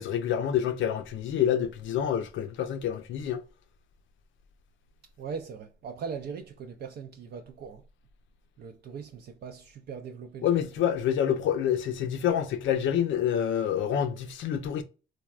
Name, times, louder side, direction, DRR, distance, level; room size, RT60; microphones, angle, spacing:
voice 1, 0.0-3.4 10.4-14.8, left 9 dB, 75° left, 0.6 m, -27 dB
voice 2, 5.2-7.8 8.6-10.5, right 6 dB, 55° right, 0.4 m, -40 dB
3.4 x 2.2 x 2.3 m
cardioid pair, 90°, 20 cm